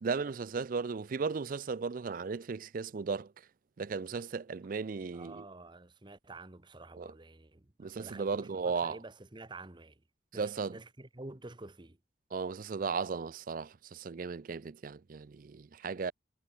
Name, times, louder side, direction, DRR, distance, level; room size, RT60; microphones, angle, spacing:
voice 1, 0.0-3.3 3.8-5.4 7.0-7.1 7.8-9.0 10.3-10.7 12.3-16.1, right 5 dB, 45° right, 0.4 m, -36 dB
voice 2, 5.1-10.0 10.3-12.0, right 2 dB, 25° right, 1.1 m, -49 dB
head